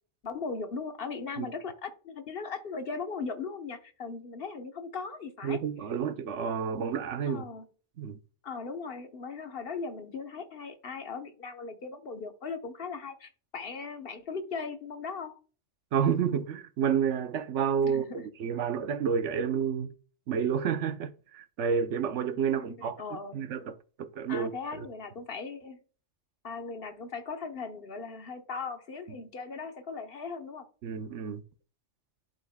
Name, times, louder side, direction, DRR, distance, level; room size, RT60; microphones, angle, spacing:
voice 1, 0.2-5.6 7.3-7.7 8.4-15.4 17.8-18.3 22.6-23.4 24.3-25.8 26.4-30.7, left 4 dB, 55° left, 1.1 m, -38 dB
voice 2, 5.4-7.5 8.0-8.2 15.9-19.9 20.3-23.0 23.3-24.9 30.8-31.4, right 7 dB, 85° right, 1.0 m, -30 dB
11.5 x 4.0 x 2.2 m
omnidirectional pair, 1.2 m